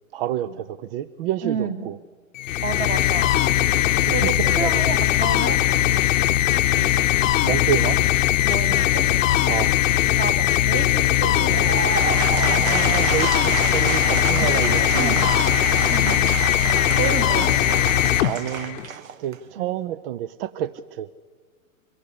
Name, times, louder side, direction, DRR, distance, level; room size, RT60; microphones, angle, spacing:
voice 1, 0.1-2.0 4.0-4.7 7.4-8.0 9.5-9.8 12.2-15.2 16.9-17.0 18.2-18.8 19.2-21.1, right 11 dB, 45° right, 16 dB, 0.6 m, -29 dB
voice 2, 1.4-1.8 2.6-3.3 4.1-5.6 6.7-6.9 8.5-9.1 10.2-11.8 12.1-12.2 12.5-12.6 14.4-14.6 15.0-15.3 15.9-16.3 17.0-17.6 19.6-19.7, right 5 dB, 20° right, 10 dB, 1.7 m, -30 dB
sound 1, 2.4-18.9, left 13 dB, 65° left, 0.9 m, -20 dB
Applause / Crowd, 11.3-19.5, right 7 dB, 75° right, 1.4 m, -29 dB
24.0 x 16.5 x 9.9 m, 1.5 s
hypercardioid pair, 130°, 41 cm